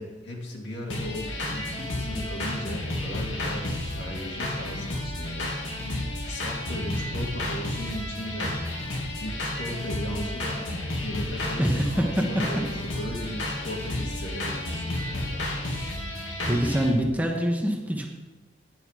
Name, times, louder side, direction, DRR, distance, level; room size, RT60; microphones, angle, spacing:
voice 1, 0.0-5.6 6.2-8.6 9.2-15.5, equal, 65° left, -1 dB, 2.2 m, -36 dB
sound 1, 0.9-16.9, left 1 dB, 85° left, 2.7 m, -31 dB
voice 2, 11.6-12.3 16.5-18.1, equal, 10° right, 1 dB, 1.1 m, -24 dB
9.3 x 8.9 x 4.9 m, 1.2 s
head